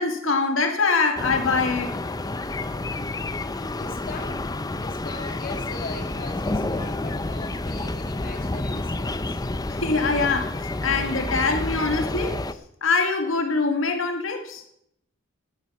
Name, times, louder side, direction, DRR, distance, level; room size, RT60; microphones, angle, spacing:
voice 1, 0.0-2.0 9.7-12.4 12.8-14.6, left 4 dB, 70° left, 2.2 m, -24 dB
sound 1, 1.2-12.5, left 2 dB, 20° left, 0.7 m, -29 dB
voice 2, 3.7-9.6, left 3 dB, 45° left, 2.0 m, -39 dB
17.5 x 11.5 x 5.7 m
head